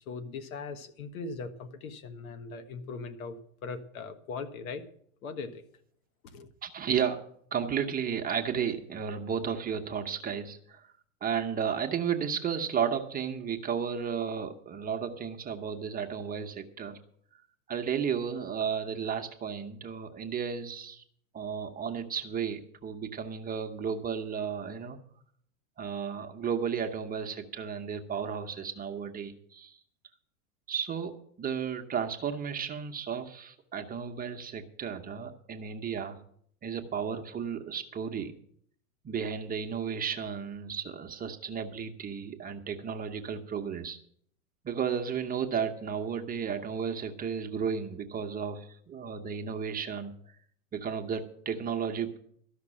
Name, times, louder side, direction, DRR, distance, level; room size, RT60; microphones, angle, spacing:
voice 1, 0.1-3.4 3.6-4.8 5.2-5.6 6.3-6.5, left 4 dB, 70° left, 9 dB, 1.6 m, -39 dB
voice 2, 6.6-10.9 11.2-17.0 17.7-21.0 21.3-25.0 25.8-29.8 30.7-36.2 36.6-38.3 39.0-44.0 44.6-50.1 50.7-52.2, right 7 dB, 20° right, 5 dB, 0.9 m, -33 dB
13.5 x 6.0 x 8.6 m, 0.64 s
hypercardioid pair, 120°, 44 cm